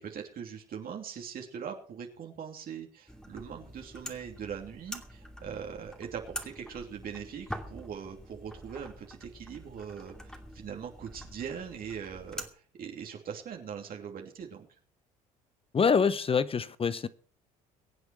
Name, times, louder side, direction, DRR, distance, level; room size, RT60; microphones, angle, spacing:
voice 1, 0.0-14.7, right 7 dB, 50° right, 2.9 m, -41 dB
sound 1, 3.1-12.5, equal, 5° left, 2.6 m, -45 dB
voice 2, 15.7-17.1, left 6 dB, 30° left, 0.8 m, -25 dB
23.0 x 8.1 x 4.7 m
hypercardioid pair, 70°, 19 cm